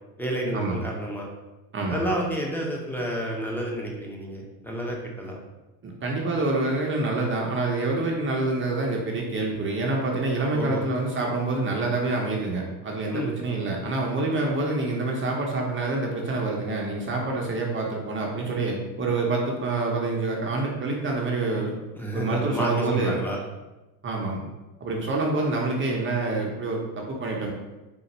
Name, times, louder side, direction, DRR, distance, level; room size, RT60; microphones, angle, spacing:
voice 1, 0.2-1.3 1.9-5.4 10.5-10.8 13.1-13.3 21.9-23.4, equal, 5° left, -1 dB, 0.8 m, -30 dB
voice 2, 1.7-2.0 5.8-21.8 22.1-23.2 24.0-24.4 24.8-27.5, right 2 dB, 30° right, -1 dB, 0.7 m, -27 dB
3.8 x 2.5 x 4.2 m, 1.0 s
supercardioid pair, 110°, 40 cm